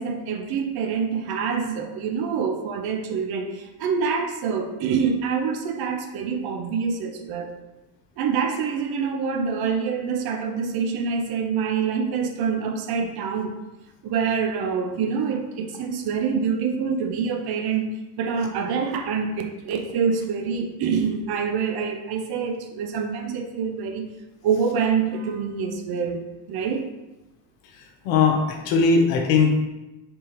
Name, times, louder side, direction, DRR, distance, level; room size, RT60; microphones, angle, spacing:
voice 1, 0.0-7.5 8.2-13.5 14.0-24.0 24.4-26.9, right 6 dB, 50° right, 6 dB, 0.6 m, -26 dB
voice 2, 28.0-29.5, left 4 dB, 85° left, 3 dB, 0.8 m, -19 dB
3.4 x 3.4 x 2.9 m, 1.0 s
supercardioid pair, 90°, 50 cm